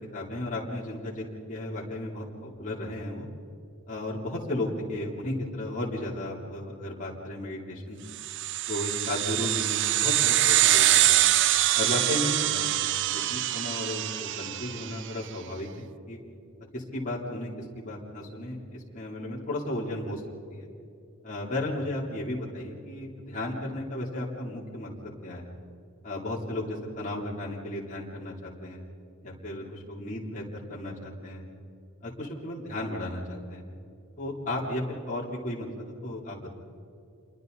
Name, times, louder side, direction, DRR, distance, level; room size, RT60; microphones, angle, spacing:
voice 1, 0.1-3.3 3.9-8.1 8.7-11.2 11.7-15.7 16.1-16.2 16.7-20.2 20.5-20.7 21.2-24.9 25.2-25.5 26.0-28.8 29.2-31.4 32.0-33.6 34.2-36.5, left 1 dB, 35° left, -4 dB, 3.3 m, -34 dB
sound 1, 8.2-15.0, right 14 dB, 55° right, 0.5 m, -24 dB
28.5 x 23.0 x 4.1 m, 2.6 s
head